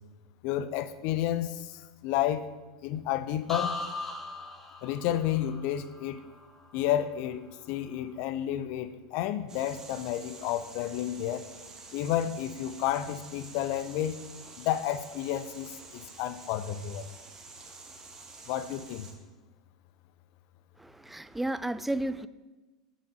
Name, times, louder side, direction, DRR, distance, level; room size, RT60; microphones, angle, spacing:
voice 1, 0.4-2.5 2.8-3.8 4.8-6.2 6.7-11.4 11.9-14.2 14.6-17.0 18.5-19.1, left 11 dB, 55° left, 13 dB, 0.5 m, -31 dB
sound 1, 3.5-7.3 7.7-8.2, left 3 dB, 10° left, 1.3 m, -39 dB
sound 2, 9.5-19.1, right 3 dB, 25° right, 1.3 m, -49 dB
voice 2, 20.8-22.3, right 1 dB, 5° right, 15 dB, 0.3 m, -32 dB
6.9 x 5.9 x 5.0 m, 1.2 s
hypercardioid pair, 85°, 2 cm